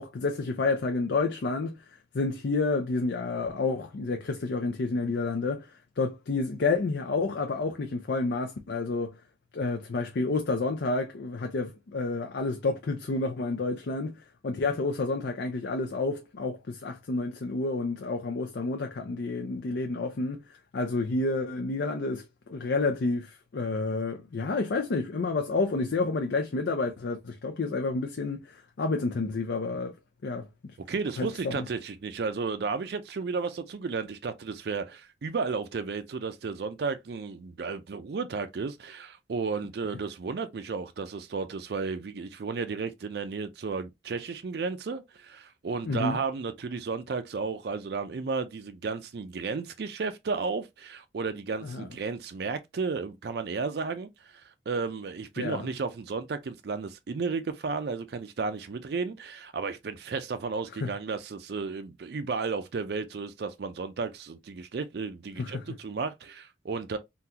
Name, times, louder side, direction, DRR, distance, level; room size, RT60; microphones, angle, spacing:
voice 1, 0.0-1.8 2.1-9.1 9.5-29.9 30.2-30.5 31.2-31.7 45.8-46.2 51.6-51.9 55.4-55.7 60.8-60.9 65.4-65.6, left 3 dB, 70° left, 0.5 m, -30 dB
voice 2, 30.9-67.0, right 4 dB, 60° right, 0.4 m, -33 dB
3.7 x 2.3 x 2.8 m
head